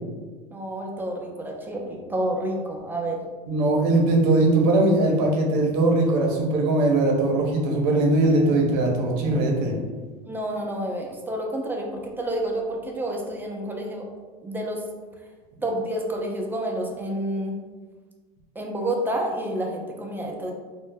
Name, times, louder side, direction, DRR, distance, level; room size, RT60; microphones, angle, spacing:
voice 1, 0.5-3.2 10.2-14.0 14.4-14.8 15.6-17.6 18.6-20.5, right 1 dB, 10° right, 0 dB, 0.5 m, -29 dB
voice 2, 3.5-9.8, right 2 dB, 65° right, 0 dB, 0.7 m, -20 dB
2.2 x 2.0 x 3.3 m, 1.4 s
hypercardioid pair, 90°, 21 cm